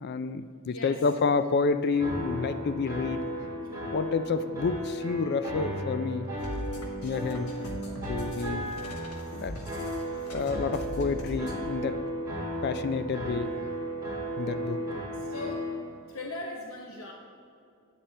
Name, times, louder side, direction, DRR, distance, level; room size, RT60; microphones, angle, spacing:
voice 1, 0.0-3.2 3.9-6.3 7.0-7.5 8.1-8.7 9.3-9.6 10.3-12.0 12.6-13.5 14.4-14.8, left 4 dB, 45° left, 12 dB, 0.3 m, -29 dB
voice 2, 0.7-1.1 3.6-3.9 15.1-15.7 16.1-17.1, left 2 dB, 65° left, 0 dB, 0.9 m, -39 dB
sound 1, 2.0-15.7, equal, 15° right, 2.5 m, -35 dB
sound 2, 6.4-11.6, left 1 dB, 80° left, 1.4 m, -40 dB
10.0 x 9.6 x 3.3 m, 2.5 s
head